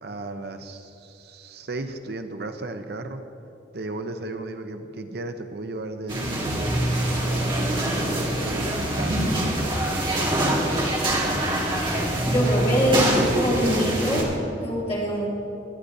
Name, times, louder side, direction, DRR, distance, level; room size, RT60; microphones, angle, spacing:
voice 1, 0.0-3.2 3.7-7.7 8.4-11.5, right 2 dB, 60° right, 7 dB, 0.6 m, -36 dB
sound 1, 6.1-14.2, right 1 dB, 25° right, 1.7 m, -24 dB
voice 2, 12.2-14.3 14.6-15.3, equal, 35° left, -7 dB, 3.2 m, -24 dB
21.5 x 9.7 x 2.7 m, 2.7 s
head